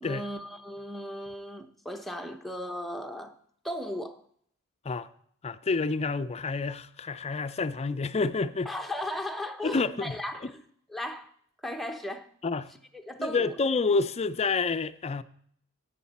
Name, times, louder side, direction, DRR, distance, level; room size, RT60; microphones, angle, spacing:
voice 1, 0.0-3.4 3.6-4.2 8.6-11.3 11.6-12.3 12.9-13.5, left 1 dB, ahead, 0.8 m, -36 dB
voice 2, 5.4-8.7 9.6-10.1 12.4-12.7 13.2-15.2, left 4 dB, 30° left, 0.4 m, -28 dB
13.0 x 8.7 x 4.2 m
head